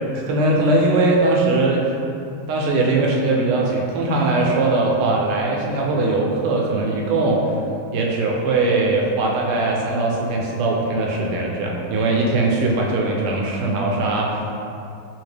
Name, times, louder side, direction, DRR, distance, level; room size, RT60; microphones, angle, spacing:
voice 1, 0.1-1.9 2.5-7.4 7.9-14.6, right 2 dB, 90° right, -1 dB, 1.5 m, -20 dB
3.6 x 2.8 x 3.2 m, 2.6 s
omnidirectional pair, 2.3 m